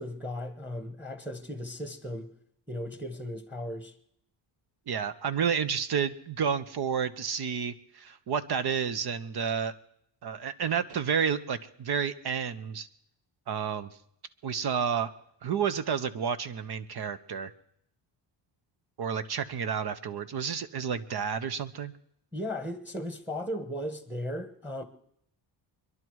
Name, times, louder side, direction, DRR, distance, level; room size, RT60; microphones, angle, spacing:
voice 1, 0.0-2.3 2.7-3.9 22.3-24.8, left 1 dB, 5° right, 1.3 m, -36 dB
voice 2, 4.9-9.7 10.2-12.9 13.5-13.9 14.4-15.1 15.4-17.5 19.0-21.9, right 7 dB, 55° right, 0.9 m, -30 dB
25.0 x 11.0 x 4.7 m
cardioid pair, 100°, 46 cm